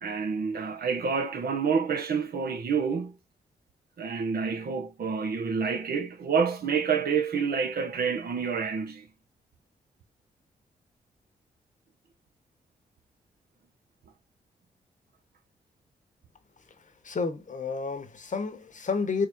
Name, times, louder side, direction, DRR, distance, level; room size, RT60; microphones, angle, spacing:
voice 1, 0.0-3.2 4.0-9.1, right 6 dB, 60° right, 0.9 m, -28 dB
voice 2, 17.0-19.3, left 4 dB, 45° left, 1.0 m, -30 dB
3.8 x 3.2 x 2.6 m
supercardioid pair, 40°, 18 cm